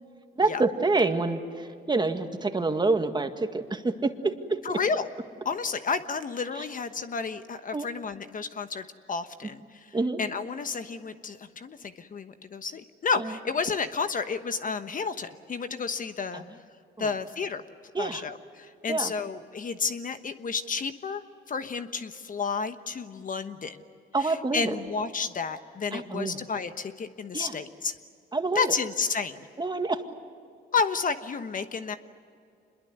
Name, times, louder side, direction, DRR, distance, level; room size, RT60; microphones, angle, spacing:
voice 1, 0.4-4.6 6.5-6.7 7.7-7.9 9.9-10.2 13.1-13.3 16.3-16.5 17.0-17.1 17.9-18.2 18.9-19.1 24.1-24.7 25.9-26.4 27.3-27.6 28.3-28.7 29.6-30.0, right 3 dB, 20° right, 6 dB, 1.9 m, -27 dB
voice 2, 4.6-5.1 5.4-9.8 10.2-16.4 17.0-17.6 18.0-21.2 21.5-23.8 24.2-27.9 28.5-29.5 30.7-32.0, left 5 dB, 45° left, 9 dB, 1.2 m, -31 dB
26.5 x 21.5 x 8.1 m, 2.4 s
cardioid pair, 90°, 20 cm